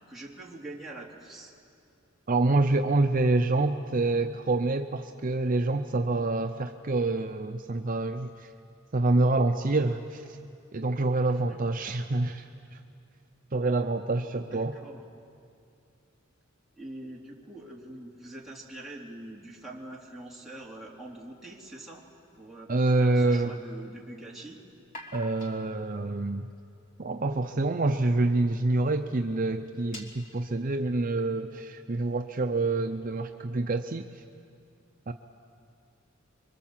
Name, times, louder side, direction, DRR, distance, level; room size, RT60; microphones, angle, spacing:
voice 1, 0.1-1.5 11.3-11.6 14.5-15.0 16.8-22.0 22.3-24.6, right 1 dB, ahead, -5 dB, 3.0 m, -44 dB
voice 2, 2.3-8.5 8.9-10.4 10.7-12.5 13.5-14.8 22.7-23.5 25.1-26.5 27.0-34.0 35.1-35.2, right 2 dB, 40° right, 5 dB, 0.7 m, -26 dB
sound 1, 21.7-23.3 24.8-27.6 28.3-28.4 28.6-28.8 29.1-29.2 29.6-31.1, equal, 40° left, 2.7 m, -49 dB
26.0 x 24.0 x 7.5 m, 2.5 s
head